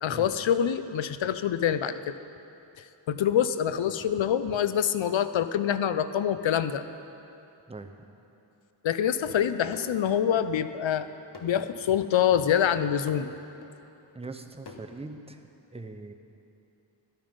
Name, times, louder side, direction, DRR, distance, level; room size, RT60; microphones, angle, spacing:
voice 1, 0.0-2.1 3.1-6.8 8.8-11.1 11.4-13.3, left 9 dB, 80° left, 12 dB, 0.6 m, -25 dB
sound 1, 9.3-10.5 10.9-11.6 12.0-12.2 12.6-13.4 13.6-13.7 14.2-14.8, left 4 dB, 60° left, 1.2 m, -47 dB
voice 2, 14.1-15.4 15.7-16.1, right 3 dB, 15° right, 6 dB, 0.7 m, -41 dB
12.5 x 8.9 x 5.3 m, 2.8 s
wide cardioid pair, 50°, 45 cm